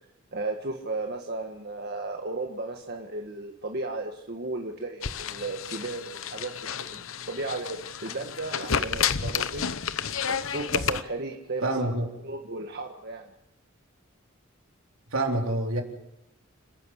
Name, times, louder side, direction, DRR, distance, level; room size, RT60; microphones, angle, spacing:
voice 1, 0.3-7.0 7.3-9.7 10.3-11.9 12.2-13.3, right 2 dB, 50° right, 2 dB, 1.7 m, -35 dB
sound 1, 5.0-11.0, left 7 dB, 80° left, 0.9 m, -31 dB
voice 2, 11.6-12.1 15.1-15.8, right 1 dB, 75° right, 2 dB, 4.1 m, -26 dB
29.5 x 11.0 x 8.2 m, 0.89 s
head